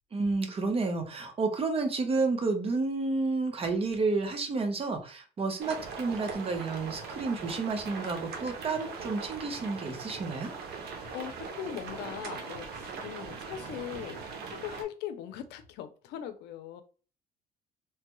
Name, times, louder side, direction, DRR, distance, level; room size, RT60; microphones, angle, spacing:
voice 1, 0.1-10.5, right 3 dB, 35° right, 5 dB, 0.8 m, -30 dB
sound 1, 5.6-14.8, right 5 dB, 70° right, 0.8 m, -40 dB
voice 2, 10.9-14.2 14.5-16.8, left 10 dB, 85° left, 10 dB, 0.5 m, -40 dB
3.2 x 2.2 x 3.0 m, 0.38 s
cardioid pair, 110°, 17 cm